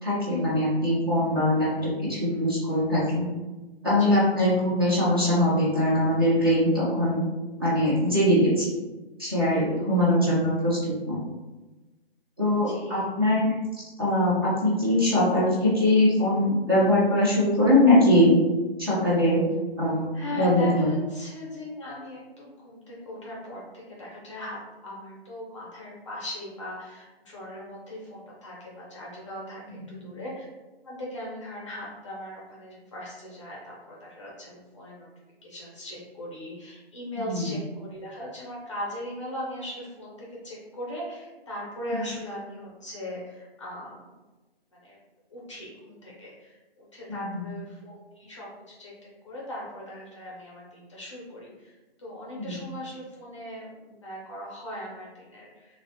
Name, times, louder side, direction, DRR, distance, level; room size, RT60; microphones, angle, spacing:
voice 1, 0.0-3.2 3.8-7.2 7.6-8.7 9.2-11.2 12.4-13.5 14.0-18.3 18.8-19.4 19.8-20.1 20.4-20.9 37.2-37.5 41.9-42.0 47.1-47.4 52.4-52.5, left 1 dB, 25° right, -9 dB, 0.4 m, -22 dB
voice 2, 9.5-9.9 12.6-13.0 20.1-30.5 30.8-35.1 35.4-44.0 44.8-45.0 45.3-48.9 49.2-51.7 52.0-55.8, left 1 dB, 30° left, -5 dB, 0.5 m, -39 dB
2.4 x 2.0 x 2.6 m, 1.2 s
hypercardioid pair, 160°, 31 cm